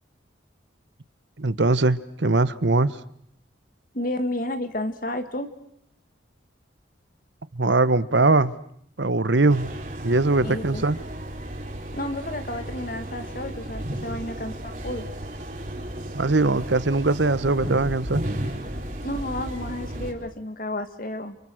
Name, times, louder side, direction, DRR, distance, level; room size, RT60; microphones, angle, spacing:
voice 1, 1.4-3.0 7.5-8.5 9.0-9.7 10.0-11.0 16.1-18.3, right 3 dB, 75° right, 1.1 m, -21 dB
voice 2, 3.9-5.6 10.4-10.8 11.9-15.1 19.0-21.4, left 1 dB, 50° left, 2.1 m, -31 dB
sound 1, 9.5-20.1, right 1 dB, 45° right, 4.4 m, -34 dB
30.0 x 28.5 x 6.5 m
head